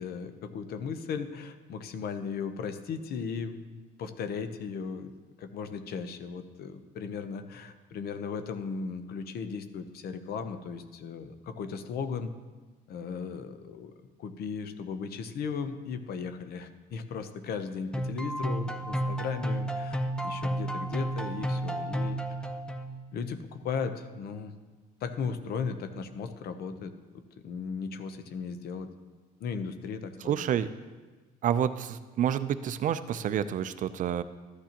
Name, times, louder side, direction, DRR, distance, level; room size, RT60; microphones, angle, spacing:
voice 1, 0.0-5.1 5.4-12.3 12.9-13.9 14.2-22.2 23.1-24.5 25.0-26.9 27.4-28.9 29.4-30.5, left 5 dB, 65° left, 9 dB, 0.8 m, -36 dB
sound 1, 17.9-23.1, right 1 dB, 5° left, 0.7 m, -32 dB
voice 2, 30.2-30.7 31.4-34.2, right 9 dB, 50° right, 12 dB, 0.5 m, -29 dB
13.0 x 9.5 x 2.9 m, 1.3 s
cardioid pair, 110°, 17 cm